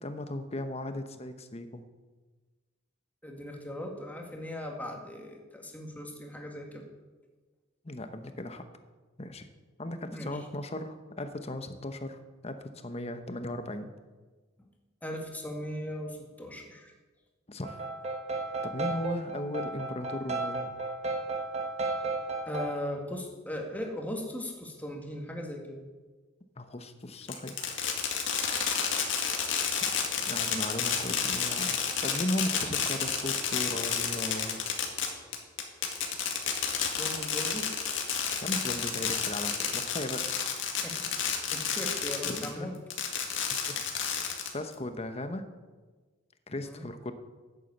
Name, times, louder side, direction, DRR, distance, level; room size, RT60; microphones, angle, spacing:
voice 1, 0.0-1.8 7.8-8.6 9.2-9.5 9.8-13.9 17.5-17.8 18.6-20.7 26.6-27.9 29.8-29.9 30.2-31.8 32.0-34.7 38.4-40.3 42.2-42.7 43.7-43.8 44.5-45.5 46.5-47.1, left 1 dB, 30° left, 8 dB, 1.0 m, -37 dB
voice 2, 3.2-6.9 10.1-10.3 14.6-14.7 15.0-16.9 22.5-25.9 36.9-37.7 40.8-42.8 46.6-46.9, left 1 dB, 10° left, 1 dB, 1.9 m, -38 dB
sound 1, 17.6-22.7, right 2 dB, 35° right, 1.4 m, -34 dB
Fireworks, 27.3-42.5 42.9-44.7, left 7 dB, 65° left, 2.1 m, -30 dB
11.5 x 8.4 x 8.1 m, 1.3 s
head